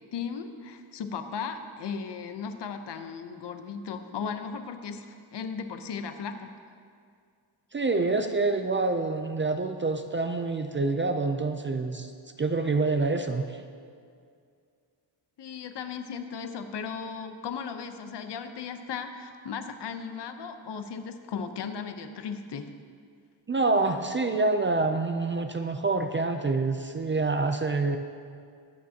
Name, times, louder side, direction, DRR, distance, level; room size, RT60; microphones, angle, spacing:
voice 1, 0.1-6.5 15.4-22.7, left 6 dB, 60° left, 7 dB, 0.8 m, -36 dB
voice 2, 7.7-12.1 12.4-13.6 23.5-28.0, right 3 dB, 25° right, 6 dB, 0.4 m, -27 dB
21.5 x 8.7 x 2.8 m, 2.2 s
wide cardioid pair, 175°, 48 cm